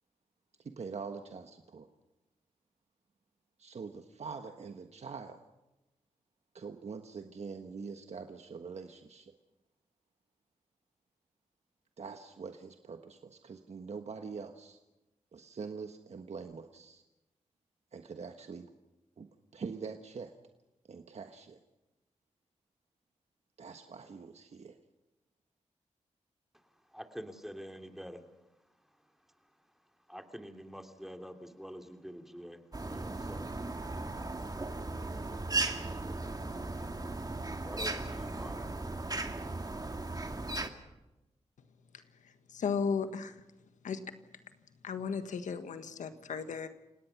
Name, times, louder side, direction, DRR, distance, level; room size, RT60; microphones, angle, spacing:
voice 1, 0.8-1.9 3.6-5.4 6.5-9.3 12.0-14.8 15.3-17.0 17.9-18.7 19.2-19.3 19.5-20.3 20.9-21.6 23.6-24.8, right 5 dB, 60° right, 6 dB, 1.4 m, -44 dB
voice 2, 26.9-28.2 30.1-33.5 37.6-38.6, equal, 5° right, 4 dB, 2.9 m, -46 dB
sound 1, 32.7-40.7, right 2 dB, 30° right, 2.3 m, -37 dB
voice 3, 42.5-43.4 43.8-44.0 44.8-46.7, left 6 dB, 85° left, 9 dB, 1.5 m, -35 dB
29.5 x 18.0 x 6.0 m, 0.99 s
cardioid pair, 45°, 12 cm